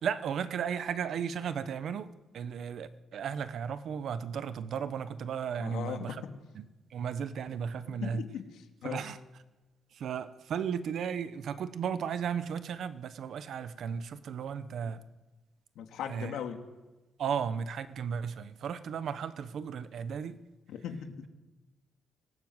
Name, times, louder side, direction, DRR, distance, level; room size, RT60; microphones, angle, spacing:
voice 1, 0.0-6.2 6.5-6.6 6.9-8.2 8.8-9.2 9.9-15.0 16.1-16.4 17.2-20.4, right 7 dB, 55° right, 12 dB, 1.1 m, -35 dB
voice 2, 5.6-6.3 7.9-9.0 15.8-16.6 20.7-21.2, left 8 dB, 85° left, 4 dB, 2.6 m, -39 dB
25.0 x 18.5 x 8.0 m, 1.2 s
cardioid pair, 165°, 0 cm